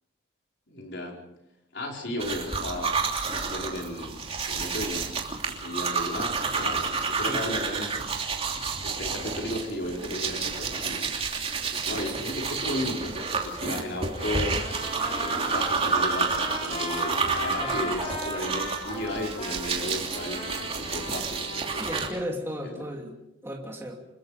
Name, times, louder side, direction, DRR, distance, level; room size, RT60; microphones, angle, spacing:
voice 1, 0.7-1.2 1.7-2.9 3.2-8.5 8.8-14.6 15.2-21.9 22.6-22.8, left 1 dB, 55° left, 0 dB, 5.0 m, -35 dB
sound 1, 2.2-22.1, right 4 dB, 30° right, 3.0 m, -30 dB
Trumpet, 14.1-19.6 20.1-22.1, left 2 dB, 30° left, 7.3 m, -37 dB
voice 2, 17.6-18.0 21.7-24.0, equal, 10° right, 0 dB, 2.9 m, -35 dB
27.5 x 22.5 x 5.1 m, 0.89 s
head